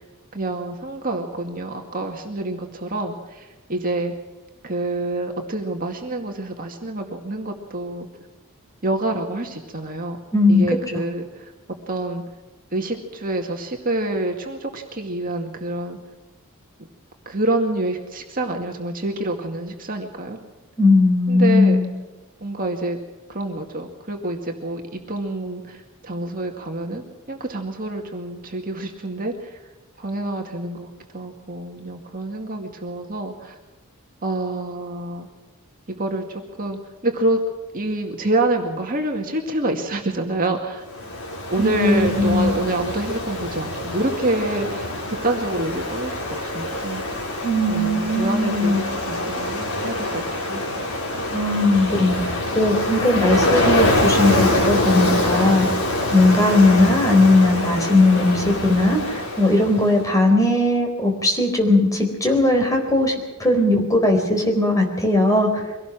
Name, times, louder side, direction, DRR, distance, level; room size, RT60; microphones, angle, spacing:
voice 1, 0.3-4.1 4.6-8.1 8.8-10.2 10.5-11.5 11.9-12.2 12.7-16.0 17.3-20.4 21.3-21.8 22.4-23.0 23.3-29.6 30.0-30.9 31.1-33.6 34.2-35.3 35.9-37.4 37.7-40.8 41.5-47.0 47.7-50.8, right 2 dB, 40° right, 2 dB, 2.2 m, -27 dB
voice 2, 10.3-10.8 20.8-21.9 41.6-42.5 47.4-48.8 51.3-55.7 56.0-63.1 63.4-65.6, left 2 dB, 15° left, 2 dB, 4.3 m, -18 dB
Ocean, 40.9-60.0, left 1 dB, 80° left, 5.3 m, -25 dB
24.0 x 18.0 x 6.2 m, 1.2 s
head